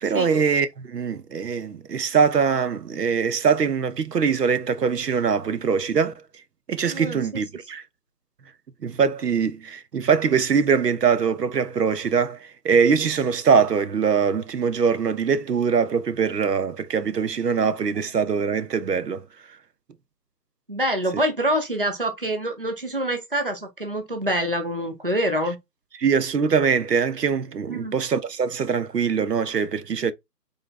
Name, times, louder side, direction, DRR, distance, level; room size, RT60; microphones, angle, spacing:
voice 1, 0.0-6.1 6.7-7.8 8.8-19.2 26.0-30.1, right 6 dB, 75° right, 0.8 m, -22 dB
voice 2, 6.8-7.4 20.7-25.6 27.7-27.9, right 1 dB, 35° right, 0.6 m, -26 dB
4.0 x 3.0 x 3.2 m
figure-of-eight pair, 170°, 48 cm